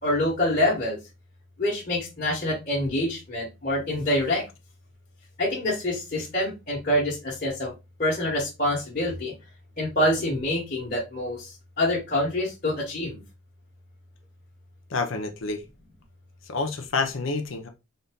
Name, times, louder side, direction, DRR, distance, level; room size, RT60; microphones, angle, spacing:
voice 1, 0.0-1.0 1.6-4.4 5.4-7.7 8.0-9.3 9.8-13.2, left 1 dB, 45° left, 1.4 m, -26 dB
voice 2, 14.9-15.6 16.5-17.7, left 3 dB, 80° left, 0.7 m, -28 dB
3.9 x 2.7 x 3.6 m
head